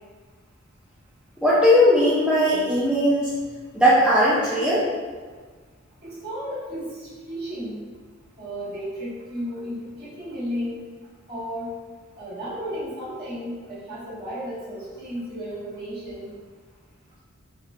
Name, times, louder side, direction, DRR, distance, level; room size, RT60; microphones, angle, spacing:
voice 1, 1.4-3.3 3.7-4.8, equal, 5° right, -8 dB, 0.4 m, -18 dB
voice 2, 6.0-7.8 8.4-10.8 11.3-11.7 12.2-16.3, equal, 50° right, -9 dB, 1.4 m, -33 dB
3.7 x 3.1 x 2.3 m, 1.5 s
head